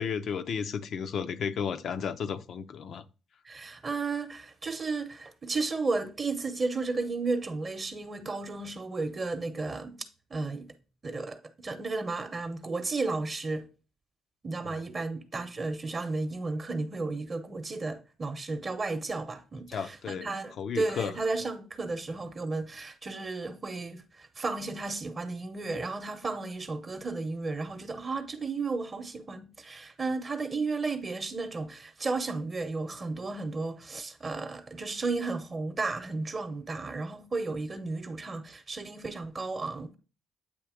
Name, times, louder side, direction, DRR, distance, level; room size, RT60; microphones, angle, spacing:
voice 1, 0.0-3.0 14.6-14.8 19.7-20.3 20.6-21.1, left 7 dB, 65° left, 0.5 m, -33 dB
voice 2, 3.4-10.0 10.3-10.7 11.0-13.7 14.4-40.0, right 3 dB, 35° right, 0.8 m, -33 dB
8.4 x 2.8 x 5.0 m
cardioid pair, 90°, 0 cm